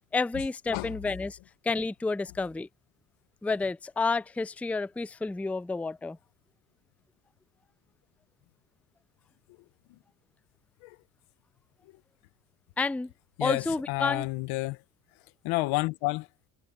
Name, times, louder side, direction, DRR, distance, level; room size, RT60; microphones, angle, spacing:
voice 1, 0.1-1.4 1.6-2.7 3.4-6.2 12.8-13.1 13.4-14.3, left 3 dB, 5° left, 0.5 m, -30 dB
voice 2, 13.4-14.8 15.4-16.3, left 22 dB, 85° left, 1.5 m, -30 dB
hypercardioid pair, 50°, 47 cm